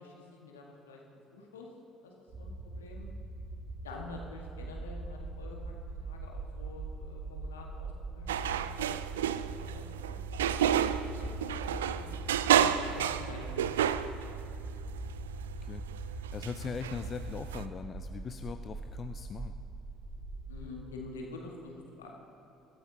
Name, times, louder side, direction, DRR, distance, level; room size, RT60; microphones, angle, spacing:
voice 1, 0.0-1.7 2.0-3.1 3.8-10.2 10.5-10.7 11.1-12.2 12.9-14.4 20.5-22.2, left 2 dB, 80° left, 0 dB, 1.8 m, -48 dB
sound 1, 2.3-20.7, right 2 dB, 50° right, 3.7 m, -42 dB
sound 2, 8.3-17.7, right 10 dB, 75° right, 0.3 m, -32 dB
voice 2, 15.6-19.5, left 6 dB, 40° left, 8 dB, 0.5 m, -40 dB
21.5 x 13.0 x 2.9 m, 2.9 s
figure-of-eight pair, 55°, 0 cm